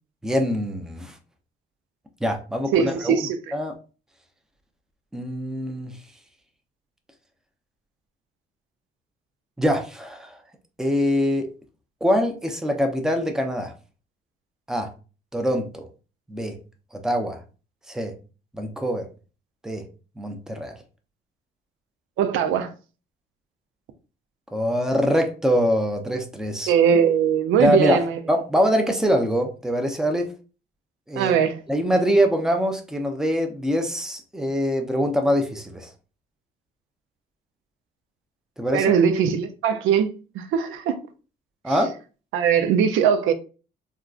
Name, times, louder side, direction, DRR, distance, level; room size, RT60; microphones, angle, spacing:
voice 1, 0.2-1.1 2.2-3.7 5.1-5.9 9.6-10.4 10.8-11.5 12.0-13.7 14.7-14.9 15.3-15.9 16.3-16.6 16.9-17.4 17.9-18.1 18.5-19.1 19.6-19.8 20.2-20.8 24.5-26.7 27.6-28.0 28.3-30.3 31.1-31.3 31.7-35.9 38.6-38.9 41.6-41.9, equal, 5° right, 0.5 m, -23 dB
voice 2, 2.7-3.4 22.2-22.7 26.7-28.2 31.2-31.6 38.7-41.0 41.7-41.8 42.3-43.3, right 7 dB, 90° right, 0.5 m, -20 dB
3.6 x 2.2 x 2.4 m
cardioid pair, 90°, 20 cm